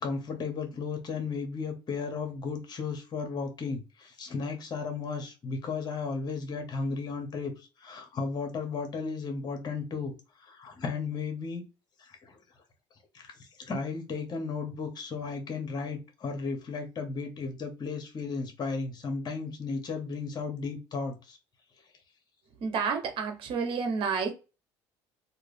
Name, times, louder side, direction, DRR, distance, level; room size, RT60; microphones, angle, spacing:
voice 1, 0.0-10.1 10.4-11.6 12.0-12.3 13.1-21.4, left 4 dB, 40° left, 1.4 m, -34 dB
voice 2, 22.6-24.3, right 5 dB, 60° right, 1.3 m, -30 dB
2.8 x 2.6 x 3.4 m
supercardioid pair, 80°, 10 cm